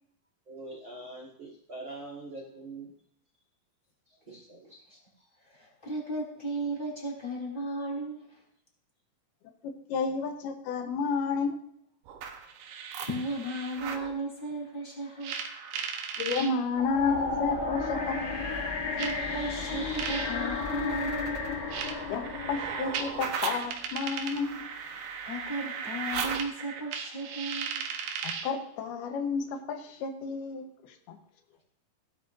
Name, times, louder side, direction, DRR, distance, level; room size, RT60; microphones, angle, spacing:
voice 1, 0.5-2.9 4.3-4.8, right 2 dB, 45° right, -3 dB, 1.8 m, -43 dB
voice 2, 5.4-8.4 13.0-15.4 18.9-21.5 25.2-27.8, right 1 dB, 15° left, -3 dB, 3.8 m, -35 dB
voice 3, 9.6-11.6 16.2-18.2 22.1-24.7 28.2-31.2, left 5 dB, 90° left, 6 dB, 3.0 m, -31 dB
sound 1, 12.1-14.1 15.2-16.5 17.6-17.7 19.0-28.6, right 6 dB, 75° right, 3.0 m, -37 dB
sound 2, 16.8-23.9, left 4 dB, 70° left, 0.8 m, -33 dB
17.0 x 11.0 x 2.6 m, 0.70 s
omnidirectional pair, 4.4 m